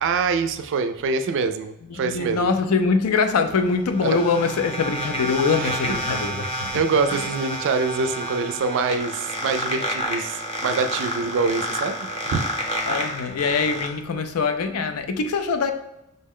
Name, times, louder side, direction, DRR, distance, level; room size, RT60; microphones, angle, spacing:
voice 1, 0.0-2.5 4.0-4.2 5.5-6.0 6.7-11.9 12.3-12.5, right 4 dB, 60° right, 10 dB, 0.3 m, -25 dB
voice 2, 2.0-6.8 12.9-15.7, left 4 dB, 85° left, 8 dB, 0.4 m, -23 dB
sound 1, 3.4-13.9, equal, 25° left, 0.7 m, -29 dB
5.3 x 2.1 x 3.6 m, 0.87 s
head